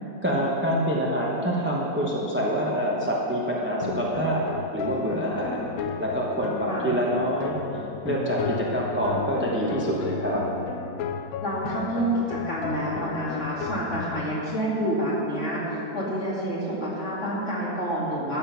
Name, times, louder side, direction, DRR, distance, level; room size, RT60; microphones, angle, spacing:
voice 1, 0.2-4.4 4.7-10.4, equal, 10° right, -3 dB, 0.9 m, -26 dB
sound 1, 3.8-14.3, left 8 dB, 70° left, 0.8 m, -34 dB
voice 2, 11.4-18.4, right 1 dB, 40° left, -6 dB, 2.9 m, -28 dB
13.0 x 7.5 x 5.9 m, 3.0 s
omnidirectional pair, 2.0 m